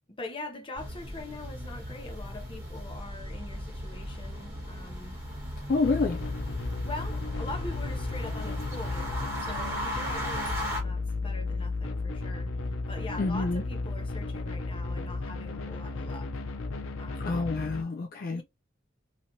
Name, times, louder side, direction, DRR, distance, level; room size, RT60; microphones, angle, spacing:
voice 1, 0.2-5.2 6.6-16.3 17.0-17.4 18.3-18.4, left 2 dB, 25° left, 0.9 m, -43 dB
sound 1, 0.7-10.8, equal, 15° right, 1.6 m, -37 dB
voice 2, 5.7-6.2 13.2-13.6 17.2-18.4, left 3 dB, 45° left, 0.4 m, -28 dB
sound 2, 5.8-17.8, left 3 dB, 90° left, 0.6 m, -34 dB
3.0 x 2.8 x 2.7 m
head